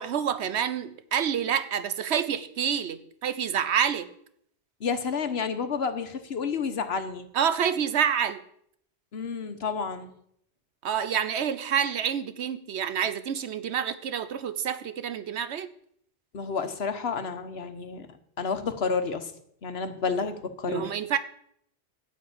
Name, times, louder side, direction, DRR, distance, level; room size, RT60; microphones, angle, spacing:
voice 1, 0.0-4.1 7.3-8.4 10.8-15.7 20.7-21.2, right 8 dB, 85° right, 12 dB, 1.1 m, -28 dB
voice 2, 4.8-7.3 9.1-10.1 16.3-18.1 18.4-19.3 19.6-20.9, left 5 dB, 70° left, 9 dB, 1.3 m, -30 dB
12.5 x 5.7 x 8.6 m, 0.70 s
omnidirectional pair, 1.1 m